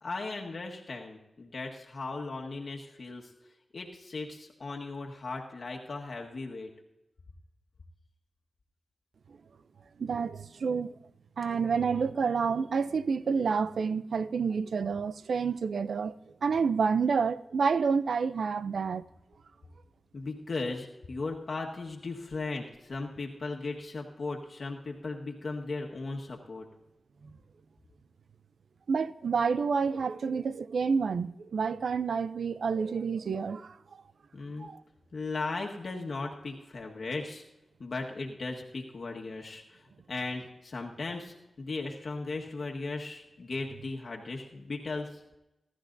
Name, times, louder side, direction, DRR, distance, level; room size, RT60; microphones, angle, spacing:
voice 1, 0.0-3.3 3.7-6.7 20.1-26.7 34.3-34.7 35.1-37.4 37.8-45.2, left 3 dB, 65° left, 1.5 m, -37 dB
voice 2, 10.0-10.9 11.4-16.1 16.4-19.0 27.2-27.3 28.9-34.0 34.6-34.8, right 5 dB, 75° right, 0.5 m, -29 dB
21.0 x 12.5 x 2.7 m
cardioid pair, 45°, 0 cm